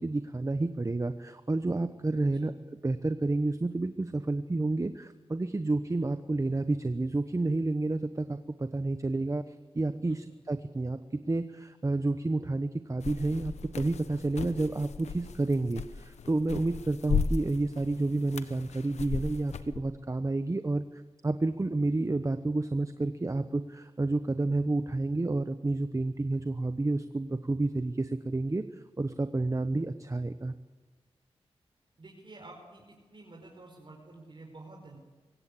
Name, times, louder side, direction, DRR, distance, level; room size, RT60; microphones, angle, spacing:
voice 1, 0.0-2.5 2.8-11.0 11.3-30.5, right 2 dB, 30° right, 10 dB, 1.0 m, -30 dB
sound 1, 13.0-19.8, left 5 dB, 85° left, 1.0 m, -36 dB
voice 2, 32.0-35.0, right 2 dB, 45° right, 0 dB, 4.9 m, -50 dB
24.5 x 16.5 x 8.5 m, 1.3 s
cardioid pair, 45°, 11 cm